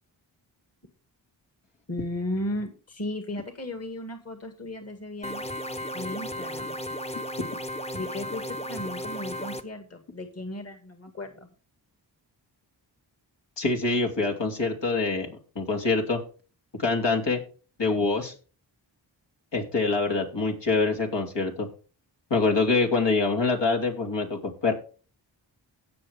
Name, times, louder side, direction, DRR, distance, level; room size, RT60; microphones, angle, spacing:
voice 1, 1.9-5.5 5.9-6.8 7.9-11.5, left 1 dB, 30° left, 6 dB, 2.1 m, -35 dB
sound 1, 5.2-9.6, equal, 15° left, 1.1 m, -34 dB
voice 2, 13.6-16.2 16.8-17.4 17.8-18.3 19.5-21.7 22.3-24.7, left 3 dB, 65° left, 1 dB, 2.9 m, -25 dB
17.0 x 6.2 x 3.5 m, 0.37 s
cardioid pair, 45°, 46 cm